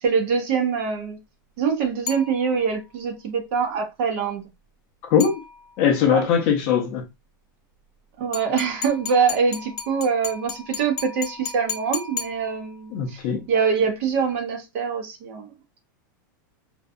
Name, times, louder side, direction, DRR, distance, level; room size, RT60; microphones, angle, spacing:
voice 1, 0.0-1.2 1.6-4.4 6.1-6.3 8.2-13.2 13.5-15.5, right 6 dB, 40° right, 0.6 m, -24 dB
sound 1, 2.1-2.9 5.2-6.0 8.3-13.0, left 7 dB, 65° left, 0.8 m, -35 dB
voice 2, 5.8-7.0 12.9-13.4, left 7 dB, 35° left, 0.5 m, -20 dB
2.7 x 2.2 x 2.4 m
supercardioid pair, 175°, 11 cm